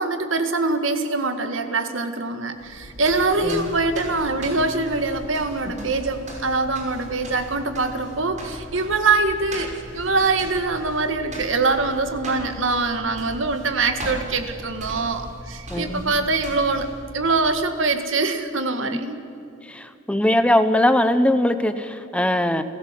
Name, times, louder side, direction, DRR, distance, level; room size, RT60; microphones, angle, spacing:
voice 1, 0.0-19.2, right 3 dB, 75° right, 8 dB, 1.9 m, -23 dB
sound 1, 2.6-17.7, equal, 40° right, 5.6 m, -38 dB
voice 2, 15.7-16.1 18.9-19.0 19.6-22.6, left 1 dB, 5° left, 10 dB, 1.0 m, -21 dB
29.5 x 15.5 x 7.7 m, 2.6 s
head